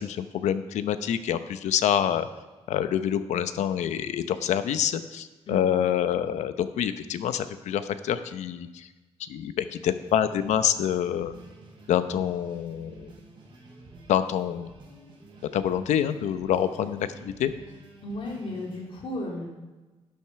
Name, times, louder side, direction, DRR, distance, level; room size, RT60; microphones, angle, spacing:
voice 1, 0.0-2.3 2.7-8.9 9.2-11.3 11.9-13.1 14.1-14.7 15.5-17.5, left 9 dB, 85° left, 11 dB, 0.8 m, -26 dB
sound 1, 9.9-18.8, right 2 dB, 45° right, 5.3 m, -50 dB
voice 2, 18.0-19.5, left 1 dB, 50° left, -2 dB, 3.0 m, -34 dB
11.0 x 10.5 x 5.8 m, 1.2 s
cardioid pair, 160°, 12 cm